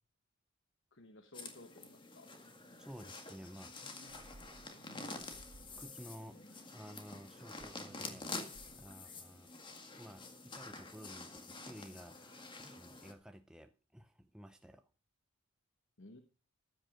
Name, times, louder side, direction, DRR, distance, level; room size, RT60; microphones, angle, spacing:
voice 1, 0.9-2.3 16.0-16.2, left 2 dB, 60° left, 1.2 m, -56 dB
sound 1, 1.3-13.1, left 3 dB, 20° left, 2.0 m, -48 dB
voice 2, 2.8-4.3 5.8-9.5 10.0-14.9, equal, 5° right, 0.5 m, -54 dB
sound 2, 3.7-6.2 7.6-9.0, right 2 dB, 80° right, 1.1 m, -60 dB
14.5 x 8.9 x 5.1 m
head